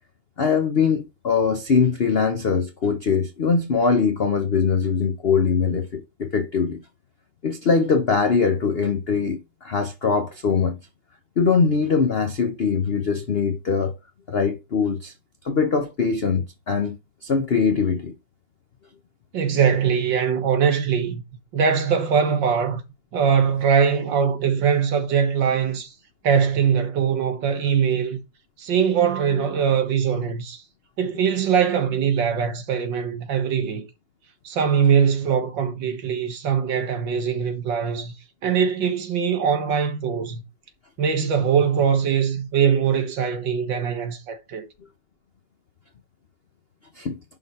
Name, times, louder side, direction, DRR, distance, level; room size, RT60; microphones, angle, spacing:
voice 1, 0.4-6.8 7.4-10.8 11.4-13.9 14.3-15.1 15.4-17.0 17.2-18.1 47.0-47.2, left 5 dB, 65° left, 0.5 m, -22 dB
voice 2, 19.3-21.2 21.5-22.8 23.1-25.9 26.2-28.2 28.6-30.6 31.0-33.9 34.4-38.1 38.4-40.4 41.0-44.7, right 7 dB, 65° right, 1.9 m, -22 dB
11.0 x 4.0 x 4.2 m
omnidirectional pair, 2.3 m